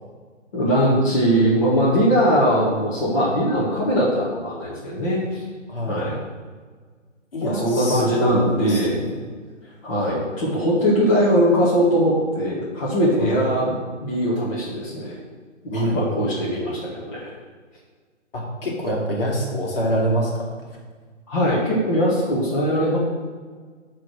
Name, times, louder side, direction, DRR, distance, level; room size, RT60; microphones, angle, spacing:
voice 1, 0.5-5.4 5.9-6.2 7.4-8.9 9.8-13.7 14.0-15.2 15.7-17.3 21.3-23.0, equal, 25° left, -7 dB, 1.5 m, -20 dB
voice 2, 5.7-6.1 7.3-9.1 13.2-13.4 15.7-16.0 18.3-20.6, equal, 50° left, -3 dB, 2.4 m, -26 dB
10.5 x 3.5 x 6.2 m, 1.5 s
figure-of-eight pair, 145°, 38 cm